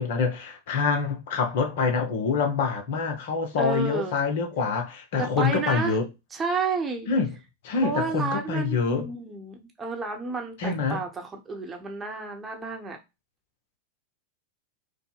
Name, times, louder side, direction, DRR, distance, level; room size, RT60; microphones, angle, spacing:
voice 1, 0.0-6.1 7.1-7.3 7.6-9.1 10.6-11.0, left 5 dB, 55° left, 0.8 m, -26 dB
voice 2, 3.6-4.2 5.2-6.0 6.3-7.1 7.8-13.0, right 4 dB, 15° right, 0.9 m, -31 dB
5.1 x 2.1 x 2.4 m
figure-of-eight pair, 90°, 0 cm